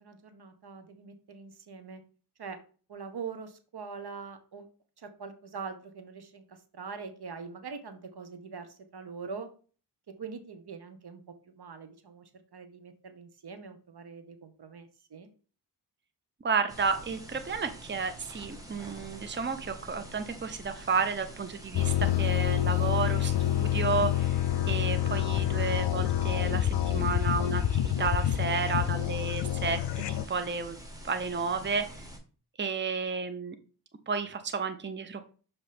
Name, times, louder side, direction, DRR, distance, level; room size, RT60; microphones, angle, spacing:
voice 1, 0.0-2.0 2.4-2.6 2.9-4.7 5.0-9.5 10.1-15.3, right 5 dB, 65° right, 8 dB, 1.0 m, -43 dB
voice 2, 16.4-24.4 24.7-30.8 31.0-31.8 32.6-33.5 34.1-35.3, right 5 dB, 25° right, 8 dB, 0.8 m, -32 dB
sound 1, 16.7-32.2, right 1 dB, 10° right, 1.6 m, -47 dB
sound 2, 21.7-30.3, left 12 dB, 75° left, 0.5 m, -27 dB
6.5 x 3.0 x 5.0 m, 0.39 s
cardioid pair, 50°, 42 cm